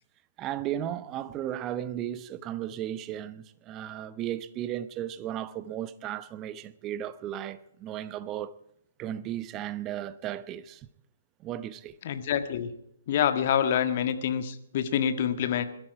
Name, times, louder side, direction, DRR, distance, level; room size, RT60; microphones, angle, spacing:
voice 1, 0.4-8.5 9.0-10.9 11.4-12.0, right 11 dB, 25° right, 0.8 m, -35 dB
voice 2, 12.0-12.7 13.1-15.6, left 9 dB, 45° left, 1.7 m, -26 dB
21.5 x 12.5 x 4.7 m
figure-of-eight pair, 130°, 0 cm